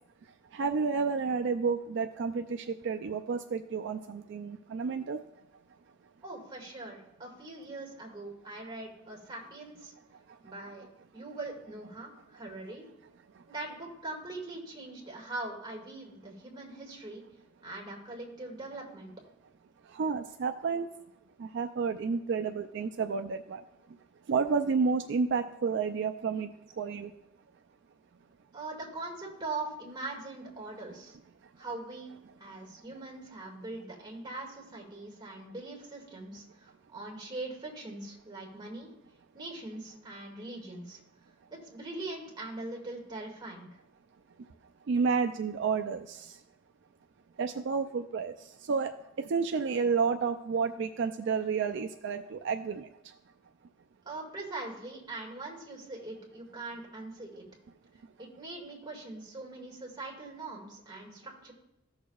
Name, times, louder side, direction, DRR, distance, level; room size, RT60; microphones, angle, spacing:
voice 1, 0.5-5.2 19.9-20.9 21.4-23.6 24.3-27.1 44.9-46.4 47.4-48.9 49.2-52.9, right 5 dB, 60° right, 6 dB, 0.4 m, -30 dB
voice 2, 6.2-9.9 10.4-10.9 11.1-12.9 13.5-17.2 17.6-19.1 28.5-31.2 31.6-32.1 32.4-38.9 39.3-41.0 41.5-43.7 54.1-57.5 58.2-61.5, right 2 dB, 20° right, -3 dB, 2.0 m, -42 dB
14.5 x 6.5 x 2.3 m, 0.87 s
head